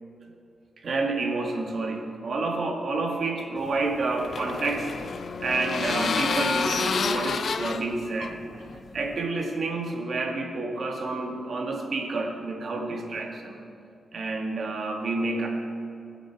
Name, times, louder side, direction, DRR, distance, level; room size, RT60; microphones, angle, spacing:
voice 1, 0.8-4.9 5.4-8.4 8.9-13.6 14.1-15.5, right 3 dB, 50° right, 2 dB, 1.7 m, -29 dB
sound 1, 3.6-9.2, left 5 dB, 50° left, 0.5 m, -30 dB
20.5 x 7.8 x 4.6 m, 2.6 s
wide cardioid pair, 160°, 0 cm